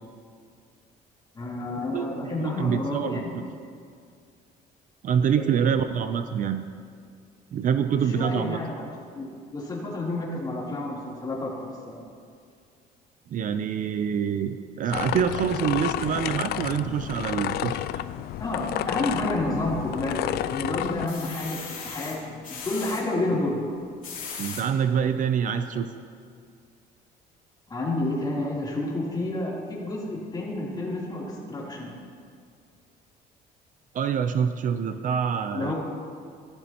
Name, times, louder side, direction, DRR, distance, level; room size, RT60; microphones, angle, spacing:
voice 1, 1.3-3.3 5.4-5.6 7.9-8.9 9.2-12.0 18.4-23.6 27.7-32.0 35.5-35.7, left 2 dB, 25° left, -5 dB, 3.4 m, -30 dB
voice 2, 1.9-3.2 5.0-6.6 7.5-8.6 13.3-18.1 24.4-25.9 33.9-35.7, right 7 dB, 50° right, 9 dB, 0.5 m, -26 dB
sound 1, 14.9-21.1, left 13 dB, 65° left, 0.4 m, -31 dB
sound 2, 19.8-20.4 20.8-23.0 23.8-24.6 25.3-25.4 25.7-25.8, left 5 dB, 50° left, 2.9 m, -38 dB
15.0 x 13.5 x 3.0 m, 2.2 s
cardioid pair, 110°, 17 cm